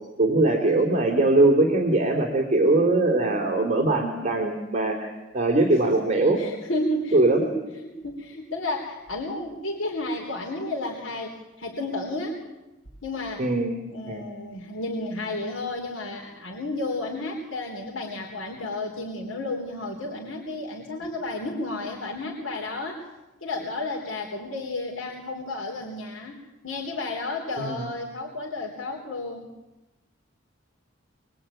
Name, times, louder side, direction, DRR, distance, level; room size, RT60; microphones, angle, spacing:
voice 1, 0.2-6.4 7.1-7.4 13.4-13.8 14.1-14.2 27.6-27.9, right 2 dB, 35° right, 2 dB, 3.4 m, -21 dB
voice 2, 6.4-12.4 13.0-13.4 13.9-23.1 23.4-29.5, left 2 dB, 85° left, 0 dB, 3.7 m, -32 dB
25.0 x 22.5 x 9.2 m, 1.0 s
head